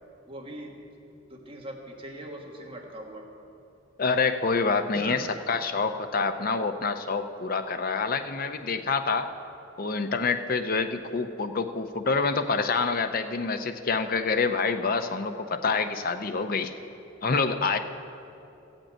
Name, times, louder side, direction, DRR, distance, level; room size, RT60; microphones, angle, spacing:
voice 1, 0.3-0.8 1.3-3.3 4.9-5.2, right 1 dB, 25° right, -1 dB, 1.5 m, -41 dB
voice 2, 4.0-9.3 9.8-16.7 17.2-17.8, left 4 dB, 45° left, 8 dB, 0.6 m, -27 dB
14.5 x 5.3 x 8.7 m, 2.8 s
head